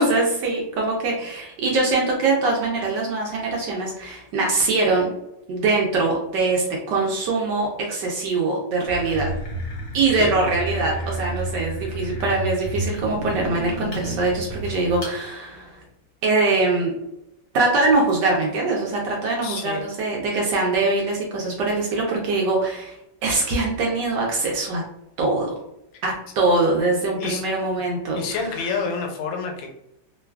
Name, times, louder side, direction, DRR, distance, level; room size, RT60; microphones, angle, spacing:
voice 1, 0.0-5.1 5.5-9.3 9.9-15.7 16.2-16.9 17.5-24.8 25.2-25.6 26.0-28.2, right 3 dB, 70° right, -2 dB, 1.1 m, -23 dB
sound 1, 8.9-15.2, right 1 dB, 60° left, 0.7 m, -31 dB
voice 2, 19.4-19.8 27.2-27.4 28.1-29.7, left 5 dB, 80° left, 2 dB, 1.3 m, -28 dB
3.2 x 2.3 x 2.2 m, 0.82 s
omnidirectional pair, 2.2 m